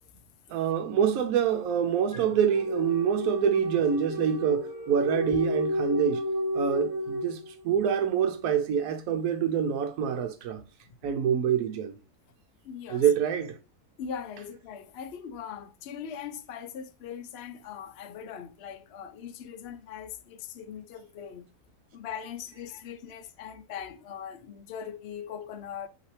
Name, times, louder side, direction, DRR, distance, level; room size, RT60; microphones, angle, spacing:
voice 1, 0.5-6.2 6.5-10.6 11.0-12.0 12.9-13.6, right 8 dB, 75° right, 1.0 m, -26 dB
sound 1, 1.5-7.8, equal, 20° right, 2.4 m, -32 dB
voice 2, 12.6-13.0 14.0-21.5 21.9-25.9, left 8 dB, 60° left, 0.6 m, -40 dB
5.7 x 2.9 x 3.1 m
omnidirectional pair, 1.6 m